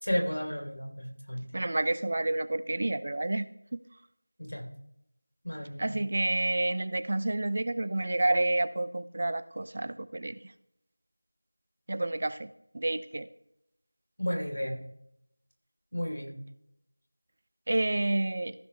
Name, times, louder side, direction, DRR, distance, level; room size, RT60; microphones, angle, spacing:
voice 1, 0.0-1.5 4.4-4.7 5.4-5.9 14.2-14.8 15.9-16.4, equal, 85° left, 1 dB, 3.1 m, -32 dB
voice 2, 1.5-3.8 5.8-10.5 11.9-12.5 12.7-13.3 17.7-18.5, right 2 dB, 40° right, 15 dB, 0.4 m, -29 dB
15.0 x 5.9 x 3.2 m, 0.76 s
figure-of-eight pair, 175°, 0 cm